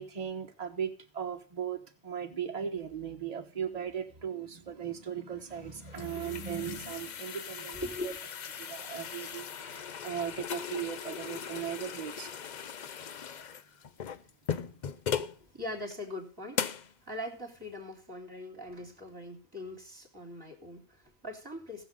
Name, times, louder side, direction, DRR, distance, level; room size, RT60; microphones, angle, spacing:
voice 1, 0.0-7.8 8.0-8.1 8.6-12.3, right 8 dB, 35° right, 1.3 m, -37 dB
sound 1, 5.5-15.4 15.9-16.0 16.5-16.9, left 7 dB, 50° left, 0.7 m, -38 dB
voice 2, 6.1-6.5 7.7-8.2 15.4-16.6 17.0-21.8, left 1 dB, 20° right, 3.4 m, -41 dB
19.0 x 6.9 x 3.8 m
omnidirectional pair, 1.1 m